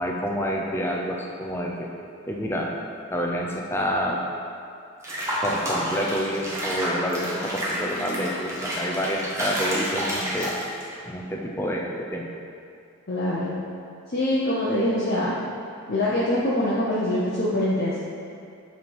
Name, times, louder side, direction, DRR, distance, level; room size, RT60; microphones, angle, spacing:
voice 1, 0.0-1.9 2.3-2.7 3.1-4.3 5.4-10.6 11.1-12.3, equal, 10° left, -1 dB, 0.5 m, -28 dB
Water / Bathtub (filling or washing), 5.0-10.9, equal, 15° right, 0.9 m, -29 dB
voice 2, 13.1-13.6 14.1-15.3 15.9-18.0, left 1 dB, 45° left, -8 dB, 0.7 m, -24 dB
7.6 x 3.3 x 4.6 m, 2.5 s
head